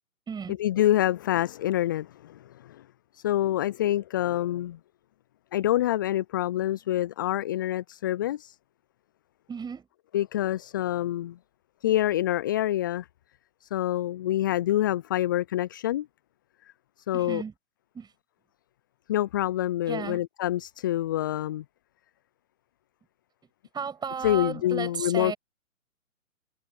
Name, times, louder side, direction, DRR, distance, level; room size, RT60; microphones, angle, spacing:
voice 1, 0.6-2.4 2.7-2.8 3.1-4.8 5.5-8.6 10.1-11.4 11.8-13.1 13.6-16.1 17.1-17.4 19.1-21.6 24.2-25.3, left 13 dB, 15° left, 0.5 m, -26 dB
voice 2, 9.5-9.9 17.1-17.5 17.9-18.1 19.9-20.2 23.7-25.4, right 6 dB, 10° right, 6.5 m, -34 dB
figure-of-eight pair, 125°, 41 cm